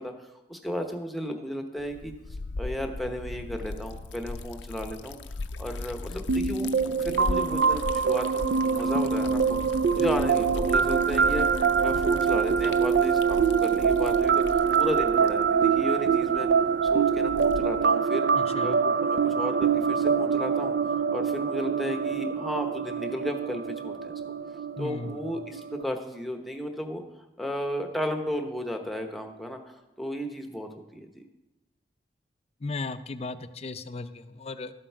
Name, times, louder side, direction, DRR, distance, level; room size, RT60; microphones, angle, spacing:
voice 1, 0.0-2.1 2.6-5.2 5.6-11.5 11.8-16.5 16.9-18.3 18.6-20.7 21.1-24.2 24.8-27.0 27.4-31.2, equal, ahead, 4 dB, 0.9 m, -34 dB
Liquid, 1.8-17.9, left 3 dB, 85° left, 0.5 m, -38 dB
sound 1, 6.3-25.8, right 6 dB, 65° right, 0.4 m, -25 dB
voice 2, 18.3-18.7 24.8-25.3 32.6-34.7, left 3 dB, 35° left, 11 dB, 0.5 m, -36 dB
12.5 x 7.7 x 4.6 m, 1.0 s
head